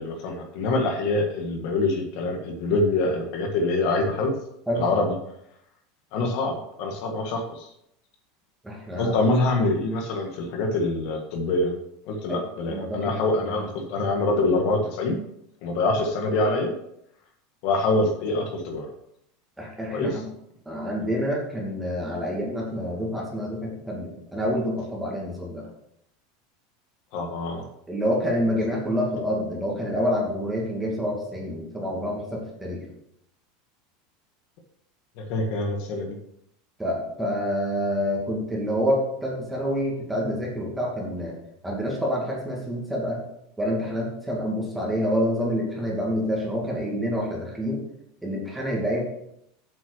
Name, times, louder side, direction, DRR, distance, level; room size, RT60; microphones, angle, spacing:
voice 1, 0.0-4.4 4.8-5.2 6.1-7.7 8.9-11.7 12.1-15.2 15.6-16.7 17.6-18.9 19.9-20.2 27.1-27.6 35.2-36.2, left 2 dB, 55° left, 3 dB, 1.7 m, -25 dB
voice 2, 8.6-9.1 12.3-12.4 12.7-13.2 13.5-13.7 19.6-20.3 20.7-25.6 27.9-32.8 36.8-41.3 41.6-43.2 43.6-47.8 48.2-49.0, equal, 5° right, -3 dB, 2.5 m, -27 dB
7.6 x 6.2 x 6.3 m, 0.76 s
supercardioid pair, 160°, 0 cm